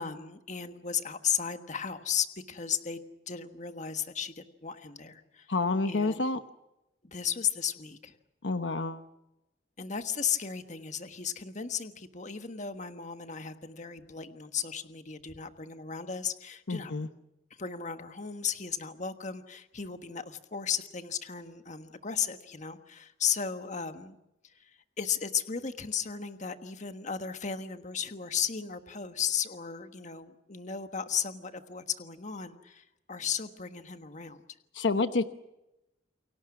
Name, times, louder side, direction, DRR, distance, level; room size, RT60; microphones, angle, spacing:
voice 1, 0.0-3.0 3.3-5.5 5.8-6.2 7.0-8.2 9.8-16.9 17.6-24.2 24.4-24.7 25.0-34.4, left 7 dB, 40° left, 8 dB, 1.4 m, -35 dB
voice 2, 5.5-6.4 8.4-9.0 16.7-17.1 34.7-35.2, left 3 dB, 75° left, 10 dB, 1.0 m, -28 dB
29.0 x 23.5 x 6.1 m, 0.91 s
head